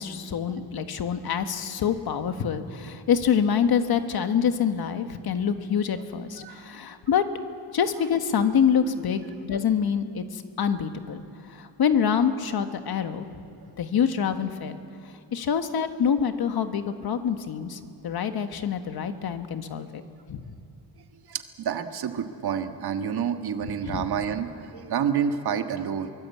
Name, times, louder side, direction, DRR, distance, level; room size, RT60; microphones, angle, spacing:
voice 1, 0.0-7.2 7.7-11.2 11.5-13.3 13.8-14.8 15.3-19.9 20.3-20.6 23.6-24.1, left 7 dB, 65° left, 8 dB, 1.5 m, -26 dB
voice 2, 21.3-26.1, right 7 dB, 70° right, 7 dB, 1.6 m, -29 dB
23.5 x 21.0 x 8.4 m, 2.7 s
wide cardioid pair, 160°, 39 cm